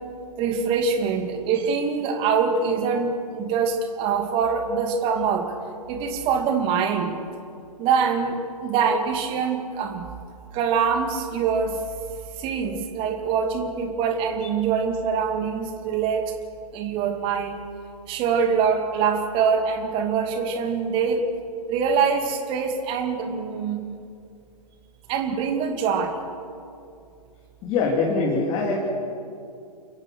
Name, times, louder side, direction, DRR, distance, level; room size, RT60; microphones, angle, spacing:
voice 1, 0.4-5.5 5.9-7.2 7.8-10.1 10.5-11.8 12.4-16.3 16.7-17.7 18.1-21.3 21.7-23.9 25.1-26.2, right 6 dB, 25° right, 5 dB, 2.5 m, -24 dB
voice 2, 27.6-28.8, left 4 dB, 25° left, -2 dB, 3.2 m, -23 dB
29.5 x 16.0 x 6.4 m, 2.5 s
figure-of-eight pair, 120°, 20 cm